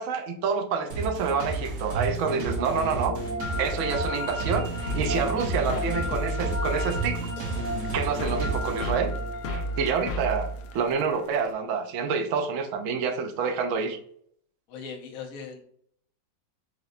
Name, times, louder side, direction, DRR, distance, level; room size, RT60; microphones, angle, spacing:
voice 1, 0.0-3.2 3.6-7.3 7.9-9.1 9.5-14.0, right 5 dB, 70° right, 5 dB, 0.7 m, -28 dB
sound 1, 0.9-8.9, right 4 dB, 45° right, 1.0 m, -34 dB
sound 2, 1.9-11.1, equal, 15° left, 0.6 m, -34 dB
sound 3, 4.9-11.5, equal, 75° left, 0.8 m, -33 dB
voice 2, 14.7-15.6, left 5 dB, 60° left, 1 dB, 1.1 m, -39 dB
4.9 x 3.0 x 2.5 m, 0.63 s
omnidirectional pair, 2.0 m